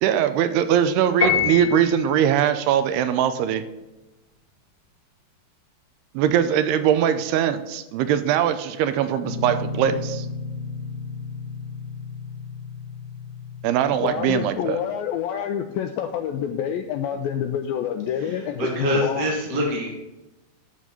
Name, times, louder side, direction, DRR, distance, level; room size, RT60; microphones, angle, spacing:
voice 1, 0.0-3.6 6.1-7.6 7.9-10.3 13.6-14.8, right 9 dB, 80° right, 10 dB, 2.7 m, -21 dB
Piano, 1.2-2.1, left 7 dB, 30° left, 2.2 m, -23 dB
Guitar, 9.2-14.5, left 3 dB, 60° left, 1.1 m, -34 dB
voice 2, 14.0-19.3, left 9 dB, 85° left, 7 dB, 2.1 m, -27 dB
voice 3, 18.2-19.9, equal, 55° right, -1 dB, 1.0 m, -25 dB
12.0 x 4.2 x 7.6 m, 1.0 s
omnidirectional pair, 4.7 m